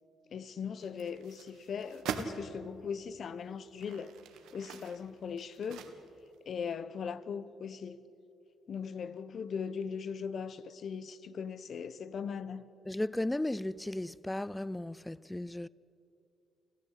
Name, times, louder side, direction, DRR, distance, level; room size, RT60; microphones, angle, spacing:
voice 1, 0.3-4.2 4.5-5.9 6.4-8.0 8.7-12.7, left 6 dB, 55° left, 1.0 m, -39 dB
sound 1, 0.8-2.4 3.0-3.1 3.7-6.4 6.7-6.8, right 8 dB, 85° right, 1.8 m, -43 dB
voice 2, 12.9-15.7, left 1 dB, 10° left, 0.5 m, -35 dB
29.5 x 13.5 x 8.2 m
cardioid pair, 90°, 0 cm